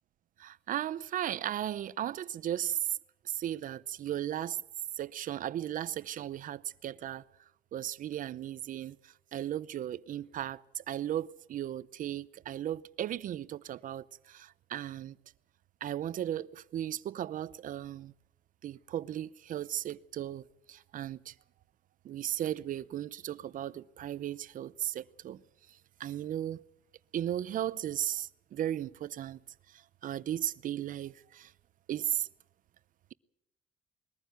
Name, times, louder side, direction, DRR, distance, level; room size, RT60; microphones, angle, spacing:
voice 1, 0.4-2.8 3.2-4.6 5.0-7.2 7.7-15.2 15.8-18.1 18.6-21.3 22.0-25.4 26.0-26.6 27.1-29.4 29.7-31.5 31.9-32.3, right 11 dB, 55° right, 0.7 m, -36 dB
21.5 x 14.5 x 9.3 m
cardioid pair, 110°, 17 cm